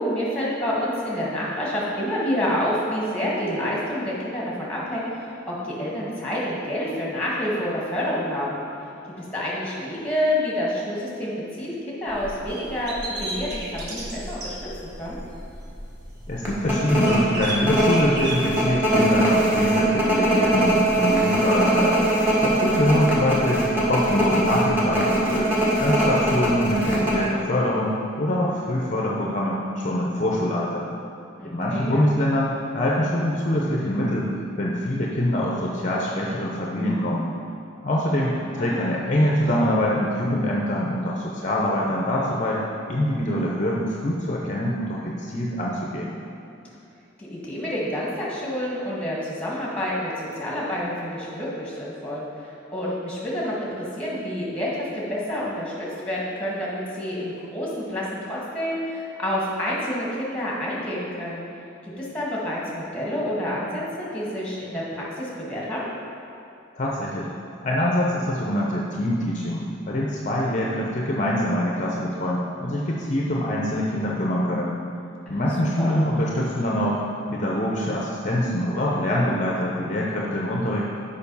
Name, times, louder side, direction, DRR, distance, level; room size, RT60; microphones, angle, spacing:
voice 1, 0.0-8.6 9.2-14.7 15.0-15.2 31.4-32.1 38.4-39.1 47.2-61.4 61.8-65.9 75.3-76.0, equal, 5° left, -5 dB, 1.6 m, -28 dB
sound 1, 12.2-12.4 12.9-13.0 13.4-14.3 14.7-14.8 15.1-15.4 15.8-15.9 16.5-27.2, right 1 dB, 10° right, 1.3 m, -21 dB
sound 2, 12.5-14.6 17.0-18.4, right 2 dB, 55° right, 1.1 m, -32 dB
voice 2, 16.3-25.5 25.8-30.9 31.4-34.3 34.6-37.3 37.8-42.6 42.9-46.2 66.8-67.3 67.6-74.8 75.3-77.0 77.3-80.9, left 1 dB, 40° left, -3 dB, 0.6 m, -24 dB
6.8 x 5.1 x 5.4 m, 2.7 s
head